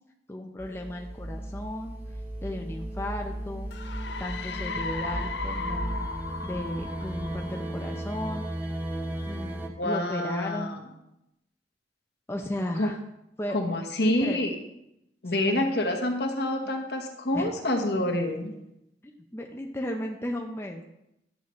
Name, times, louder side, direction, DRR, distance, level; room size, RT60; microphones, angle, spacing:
voice 1, 0.3-2.0 2.4-3.7 4.2-6.0 6.4-8.5 9.2-10.8 12.3-13.0 13.4-13.6 14.0-14.4 15.4-15.7 17.3-17.5 19.0-20.8, left 1 dB, 15° left, 1 dB, 0.6 m, -35 dB
sound 1, 0.6-9.7, right 1 dB, 10° right, 0.9 m, -35 dB
sound 2, 3.7-8.3, left 4 dB, 85° left, 0.6 m, -36 dB
voice 2, 9.8-10.8 12.8-12.9 13.5-14.6 15.2-18.5, left 1 dB, 70° left, 3 dB, 1.2 m, -27 dB
11.0 x 7.4 x 3.1 m, 0.85 s
head